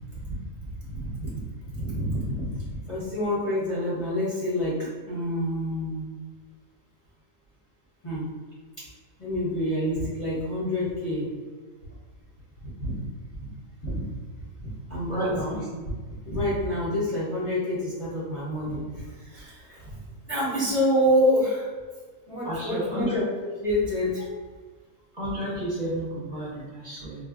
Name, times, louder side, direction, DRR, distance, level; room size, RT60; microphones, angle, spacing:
voice 1, 0.6-6.0 8.0-8.3 9.2-11.3 12.8-13.0 13.3-13.5 13.8-14.1 14.4-15.6 16.2-20.0 20.3-21.7 22.3-24.2, equal, 30° left, -8 dB, 0.8 m, -28 dB
voice 2, 15.0-15.6 22.4-23.2 25.1-27.2, right 1 dB, 35° right, -9 dB, 0.8 m, -31 dB
4.4 x 2.2 x 2.4 m, 1.4 s
omnidirectional pair, 1.4 m